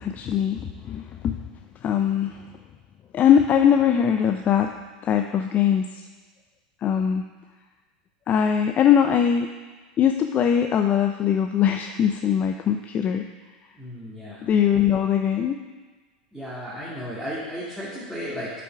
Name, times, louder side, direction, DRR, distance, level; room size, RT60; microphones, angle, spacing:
voice 1, 0.0-1.4 1.8-2.4 3.1-4.7 5.0-5.8 6.8-7.2 8.3-9.5 10.0-13.2 14.4-15.6, left 8 dB, 35° left, 6 dB, 0.5 m, -21 dB
voice 2, 13.7-14.4 16.3-18.5, equal, ahead, -10 dB, 2.7 m, -34 dB
8.1 x 6.1 x 6.0 m, 1.3 s
hypercardioid pair, 105°, 5 cm